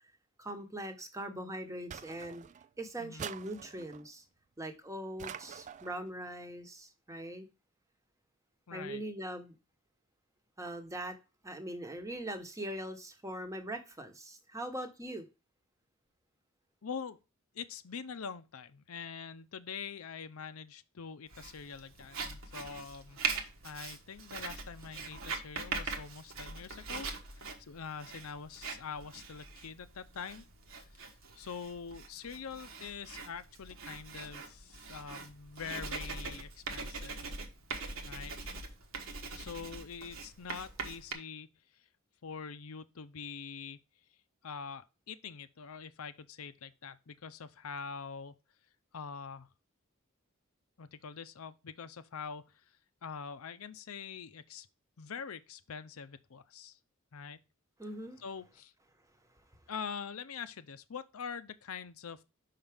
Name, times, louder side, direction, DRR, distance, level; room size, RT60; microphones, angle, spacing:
voice 1, 0.4-2.4 2.8-4.2 4.6-7.5 8.7-9.6 10.6-11.2 11.4-15.3 57.8-58.2, right 1 dB, 15° right, 1.0 m, -41 dB
sound 1, 1.9-2.7 3.2-4.1 5.2-6.0, right 8 dB, 35° right, 0.3 m, -45 dB
voice 2, 3.0-3.3 8.7-9.0 16.8-17.2 17.5-23.2 23.6-30.4 30.8-37.1 38.1-38.3 39.3-41.5 42.2-43.8 44.4-48.3 48.9-49.5 50.8-52.7 53.0-54.7 55.0-56.8 57.1-57.4 58.2-58.7 59.7-62.2, left 6 dB, 90° left, 0.6 m, -44 dB
Writing, 21.3-41.1, right 4 dB, 65° right, 1.2 m, -42 dB
5.8 x 5.6 x 3.4 m
head